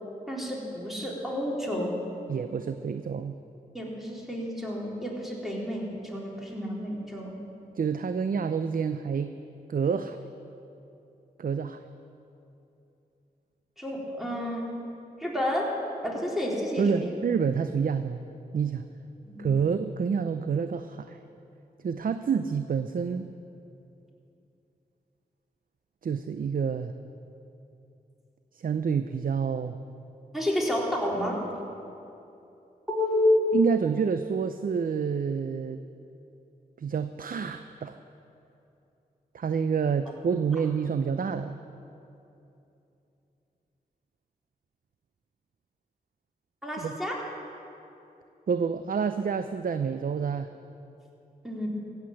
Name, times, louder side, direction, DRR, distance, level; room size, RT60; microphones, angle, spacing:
voice 1, 0.3-2.0 3.7-7.3 13.8-14.7 15.2-15.7 16.0-17.1 19.2-19.5 30.3-31.4 32.9-33.5 46.6-47.2 51.4-51.7, left 1 dB, ahead, -3 dB, 3.9 m, -29 dB
voice 2, 2.3-3.4 7.7-9.3 9.7-10.2 11.4-11.8 16.8-18.3 18.5-18.8 19.4-21.2 21.8-23.3 26.0-26.9 28.5-29.8 33.5-35.8 36.8-38.0 39.3-41.6 46.8-46.9 48.5-50.5, right 6 dB, 60° right, 10 dB, 0.6 m, -28 dB
15.5 x 8.1 x 7.7 m, 2.8 s
cardioid pair, 45°, 17 cm